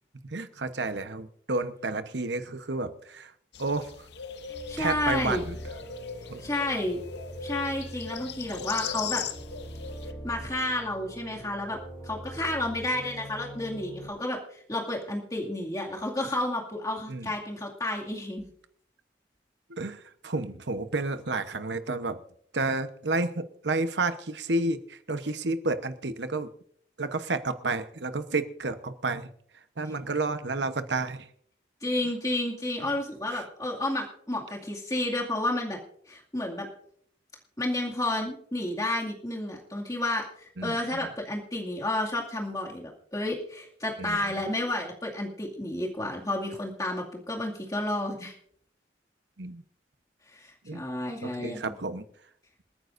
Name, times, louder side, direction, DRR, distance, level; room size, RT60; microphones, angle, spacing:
voice 1, 0.3-3.3 3.6-3.9 4.8-5.6 6.3-6.4 17.1-17.3 19.7-22.2 22.5-26.5 27.0-29.3 29.8-31.3 33.3-33.5 40.6-40.8 44.0-44.3 49.4-49.6 50.6-50.8 51.2-52.0, right 3 dB, 75° right, 10 dB, 1.0 m, -31 dB
sound 1, 3.5-10.1, left 7 dB, 70° left, 0.8 m, -39 dB
sound 2, 4.5-14.1, right 1 dB, 50° left, 4.5 m, -43 dB
voice 2, 4.7-5.4 6.4-7.0 7.4-9.2 10.2-11.8 12.0-18.5 31.8-35.8 36.1-36.7 37.6-48.3 50.3-51.7, left 1 dB, 20° left, -1 dB, 2.3 m, -31 dB
28.0 x 9.5 x 2.6 m, 0.64 s
head